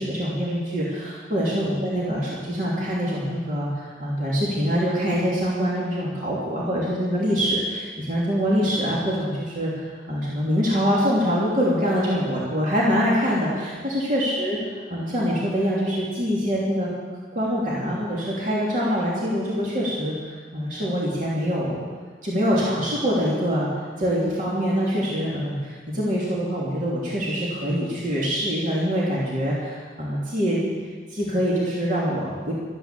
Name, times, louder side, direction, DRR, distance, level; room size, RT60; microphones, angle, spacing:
voice 1, 0.0-14.6 14.9-16.9 17.3-20.1 20.5-21.8 22.2-23.7 24.0-30.7 31.1-32.5, equal, 45° right, -6 dB, 3.0 m, -24 dB
13.0 x 10.0 x 7.5 m, 1.5 s
head